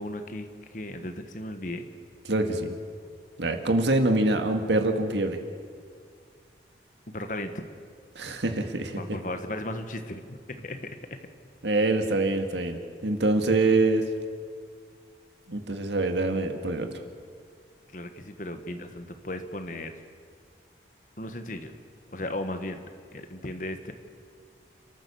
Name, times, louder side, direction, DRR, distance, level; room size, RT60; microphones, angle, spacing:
voice 1, 0.0-1.8 7.1-7.6 9.0-11.2 17.9-19.9 21.2-21.7 22.1-22.8 23.1-23.9, left 1 dB, 45° left, 8 dB, 1.5 m, -36 dB
voice 2, 2.3-2.7 3.4-5.4 8.2-9.0 11.6-14.1 15.5-16.9, right 2 dB, 85° right, 6 dB, 2.0 m, -25 dB
29.5 x 14.0 x 7.1 m, 2.1 s
head